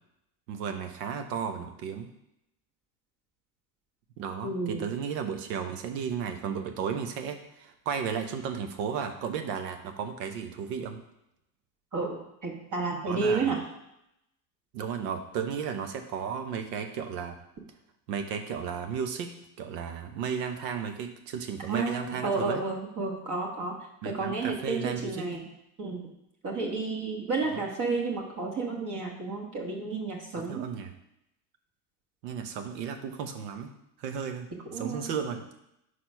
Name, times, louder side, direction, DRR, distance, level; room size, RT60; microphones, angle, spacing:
voice 1, 0.5-2.1 4.2-11.0 13.0-13.5 14.7-17.4 18.1-22.6 24.0-25.4 27.4-27.6 30.3-30.9 32.2-34.5 34.7-35.5, right 7 dB, 75° right, 7 dB, 0.9 m, -34 dB
voice 2, 4.4-4.8 11.9-13.6 21.7-23.7 24.0-25.5 25.8-26.1 26.4-30.6 34.7-35.1, right 3 dB, 40° right, -1 dB, 1.5 m, -31 dB
4.9 x 4.3 x 5.4 m, 0.82 s
hypercardioid pair, 90°, 48 cm